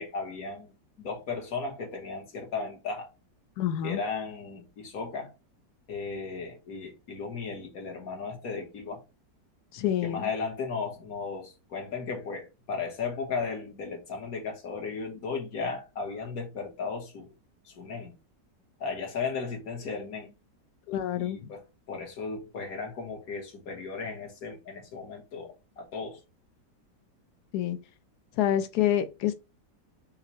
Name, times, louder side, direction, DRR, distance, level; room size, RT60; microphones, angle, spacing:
voice 1, 0.0-3.1 3.8-5.4 5.9-9.0 10.0-17.3 17.6-18.2 18.8-20.3 21.2-26.2, left 4 dB, 55° left, 1.5 m, -35 dB
voice 2, 3.6-4.0 9.7-10.3 20.9-21.4 27.5-27.8 28.4-29.3, left 11 dB, 70° left, 1.1 m, -27 dB
5.7 x 2.2 x 2.9 m
omnidirectional pair, 2.0 m